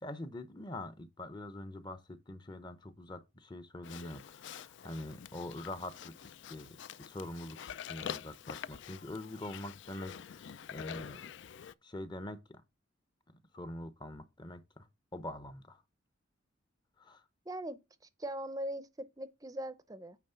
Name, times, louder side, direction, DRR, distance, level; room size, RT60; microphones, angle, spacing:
voice 1, 0.0-11.2 11.8-12.6 13.3-14.9 15.1-15.8 17.0-17.2, left 1 dB, 20° left, 0.7 m, -44 dB
Livestock farm animals working animals, 3.8-11.7, left 8 dB, 65° left, 0.4 m, -46 dB
voice 2, 17.5-17.8 18.2-20.2, right 1 dB, 20° right, 0.6 m, -40 dB
9.4 x 3.2 x 5.5 m
head